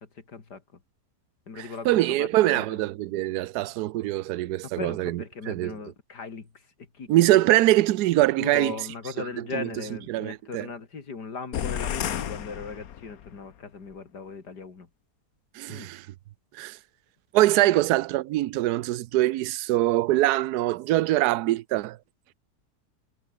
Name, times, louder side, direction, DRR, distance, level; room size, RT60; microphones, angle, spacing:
voice 1, 0.3-0.6 1.5-2.8 4.8-6.5 6.9-7.1 8.4-14.9 15.7-15.9, left 5 dB, 85° left, 3.3 m, -38 dB
voice 2, 1.6-5.8 7.1-8.8 9.2-9.7 10.1-10.7 15.5-16.1 16.5-16.8 17.3-22.0, right 16 dB, 80° right, 1.1 m, -23 dB
sound 1, 11.5-13.4, left 10 dB, 65° left, 1.4 m, -32 dB
omnidirectional pair, 1.7 m